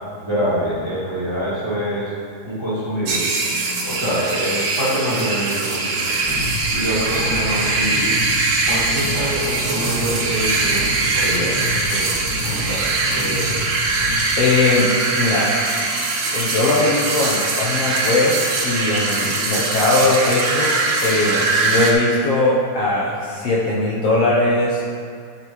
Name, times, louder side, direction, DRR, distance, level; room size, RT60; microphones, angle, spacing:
voice 1, 0.2-2.1 2.4-3.3 3.8-6.2 6.7-8.2 8.6-10.9 11.1-12.1 12.4-13.6, equal, 10° right, -10 dB, 1.7 m, -25 dB
sound 1, 3.0-21.9, right 3 dB, 65° right, 1.6 m, -22 dB
sound 2, 6.2-14.1, equal, 90° left, 3.3 m, -29 dB
voice 2, 14.4-15.5 16.0-24.8, left 2 dB, 70° left, -6 dB, 1.5 m, -20 dB
11.5 x 6.5 x 3.1 m, 2.2 s
omnidirectional pair, 3.7 m